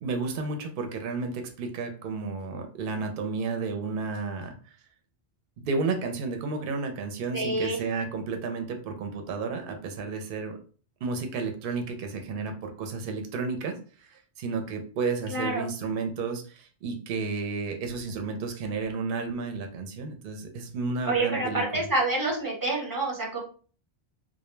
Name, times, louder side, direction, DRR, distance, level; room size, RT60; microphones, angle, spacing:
voice 1, 0.0-4.6 5.6-10.6 11.0-13.8 14.1-21.6, right 4 dB, 65° right, 5 dB, 0.7 m, -32 dB
voice 2, 7.3-7.8 15.3-15.7 21.1-23.4, right 2 dB, 20° right, -2 dB, 0.7 m, -27 dB
2.1 x 2.1 x 3.0 m, 0.40 s
omnidirectional pair, 1.1 m